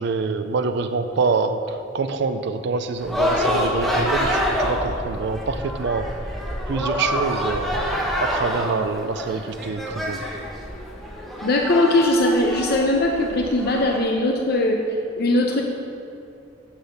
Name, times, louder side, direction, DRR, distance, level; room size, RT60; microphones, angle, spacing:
voice 1, 0.0-6.1 6.7-10.3, right 4 dB, 65° right, 8 dB, 0.4 m, -26 dB
sound 1, 3.0-14.0, equal, ahead, 1.0 m, -26 dB
voice 2, 11.4-14.8 15.2-15.6, left 1 dB, 60° left, 1 dB, 0.7 m, -20 dB
8.9 x 5.7 x 7.0 m, 2.6 s
head